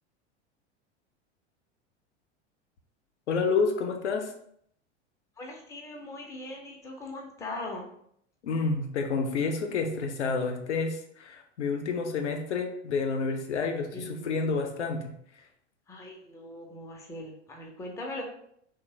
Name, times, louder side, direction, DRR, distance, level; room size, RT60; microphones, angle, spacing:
voice 1, 3.3-4.3 8.4-15.4, left 4 dB, 75° left, 4 dB, 0.5 m, -29 dB
voice 2, 5.4-7.9 13.9-14.3 15.9-18.2, left 2 dB, 10° left, 0 dB, 0.3 m, -40 dB
2.9 x 2.0 x 2.8 m, 0.69 s
figure-of-eight pair, 85°, 35 cm